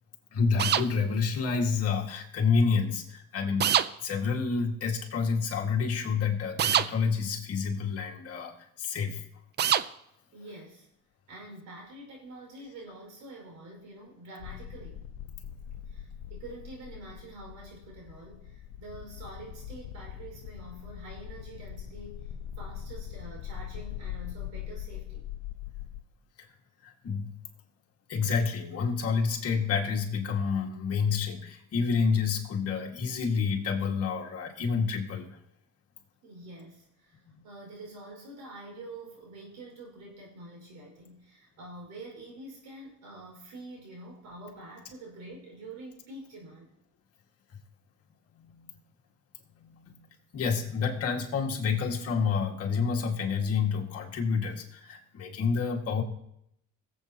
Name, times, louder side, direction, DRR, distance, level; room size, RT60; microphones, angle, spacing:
voice 1, 0.3-3.7 4.0-9.2 26.4-26.5 26.8-27.3 28.1-35.4 37.3-37.5 48.4-48.7 49.6-50.1 50.3-56.0, left 5 dB, 45° left, 0 dB, 2.0 m, -29 dB
sound 1, 0.6-0.9 3.6-3.9 6.6-6.9 9.6-9.9, right 10 dB, 35° right, 0.4 m, -24 dB
voice 2, 10.3-10.9 11.3-15.1 15.9-25.3 36.2-46.7, right 2 dB, 70° right, 0 dB, 5.5 m, -46 dB
sound 2, 14.4-26.0, left 10 dB, 80° left, 0.7 m, -42 dB
21.0 x 7.9 x 3.0 m, 0.76 s
cardioid pair, 130°, 32 cm